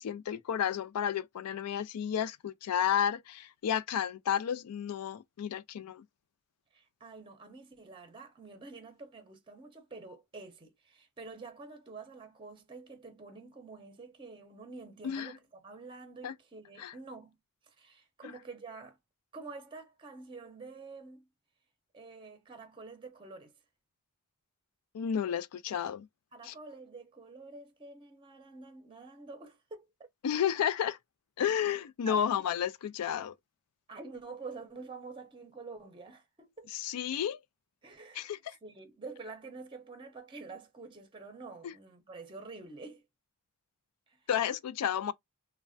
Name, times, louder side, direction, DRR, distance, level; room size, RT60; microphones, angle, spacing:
voice 1, 0.0-6.0 15.0-15.4 16.2-16.3 16.8-16.9 18.2-18.3 24.9-26.1 26.4-26.5 30.2-31.0 31.4-33.3 36.7-37.4 38.2-38.6 41.6-41.7 44.3-45.1, left 9 dB, 85° left, 0.4 m, -32 dB
voice 2, 6.7-17.4 17.6-19.0 19.3-21.3 21.9-23.5 26.3-29.9 32.1-32.4 33.9-36.7 37.8-38.3 38.6-43.0 44.1-44.2, right 3 dB, 25° right, 0.6 m, -48 dB
3.2 x 2.1 x 2.5 m
head